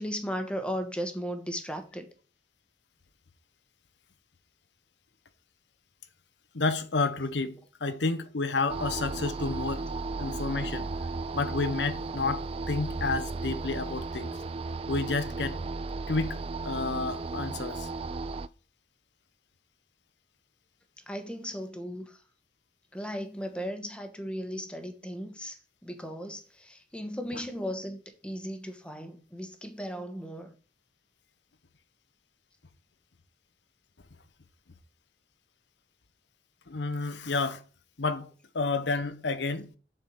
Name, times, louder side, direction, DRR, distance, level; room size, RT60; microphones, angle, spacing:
voice 1, 0.0-2.1 21.1-22.2 22.9-30.5, equal, 5° left, 1.2 m, -36 dB
voice 2, 6.5-9.9 10.2-10.9 11.3-14.4 14.9-15.6 16.1-17.9 27.3-27.4 36.7-37.6 38.0-38.3 38.5-39.7, left 3 dB, 80° left, 0.9 m, -30 dB
sound 1, 8.7-18.5, right 3 dB, 30° right, 0.3 m, -35 dB
7.5 x 4.6 x 7.1 m
head